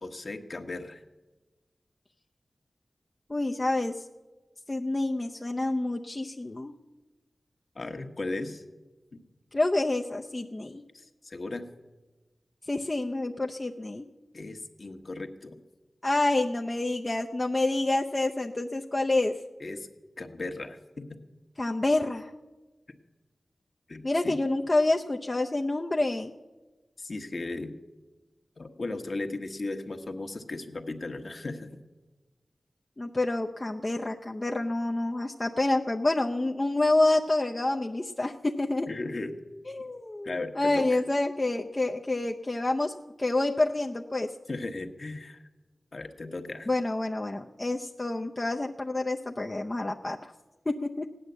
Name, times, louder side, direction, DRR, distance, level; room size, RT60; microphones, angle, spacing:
voice 1, 0.0-1.0 7.7-8.6 9.1-9.2 10.9-11.7 14.3-15.6 19.6-19.9 20.2-21.1 23.9-24.4 27.0-27.7 28.6-31.8 38.9-39.3 40.2-41.0 44.5-45.4 45.9-46.7, left 2 dB, 55° left, 5 dB, 1.3 m, -36 dB
voice 2, 3.3-3.9 4.7-6.7 9.5-10.8 12.7-14.1 16.0-19.3 21.6-22.3 24.0-26.3 33.0-38.9 39.7-44.3 46.7-50.3 50.8-51.1, left 2 dB, 30° left, 2 dB, 0.6 m, -28 dB
16.5 x 10.0 x 8.0 m, 1.2 s
wide cardioid pair, 75°, 0 cm